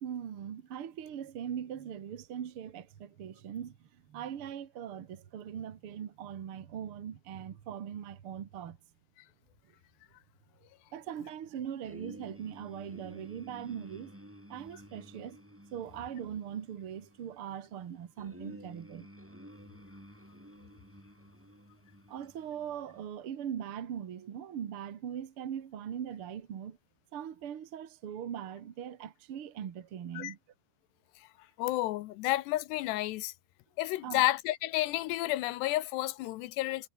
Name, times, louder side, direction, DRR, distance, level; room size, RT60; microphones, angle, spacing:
voice 1, 0.0-8.8 10.9-14.2 14.5-15.4 15.7-19.1 22.1-26.8 27.1-30.4 34.0-34.2, right 9 dB, 65° right, 1.3 m, -40 dB
sound 1, 11.8-23.1, equal, 5° right, 7.5 m, -53 dB
voice 2, 31.6-33.3 33.8-36.9, left 16 dB, 80° left, 2.9 m, -31 dB
omnidirectional pair, 5.0 m